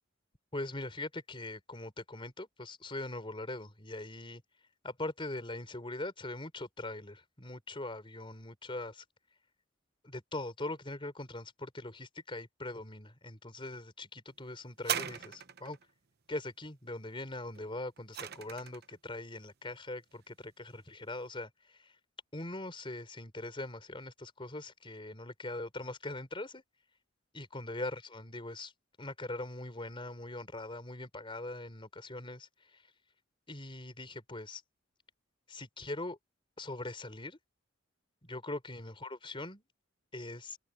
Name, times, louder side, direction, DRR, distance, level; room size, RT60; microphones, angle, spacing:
voice 1, 0.5-4.4 4.8-9.0 10.0-15.8 16.3-21.9 22.3-26.6 27.3-28.7 29.0-32.5 33.5-34.6 35.5-36.2 36.6-37.4 38.2-39.6 40.1-40.6, left 2 dB, 25° left, 4.4 m, -41 dB
sound 1, 14.8-15.8 17.6-18.9 19.7-19.8, right 9 dB, 50° right, 0.9 m, -38 dB
head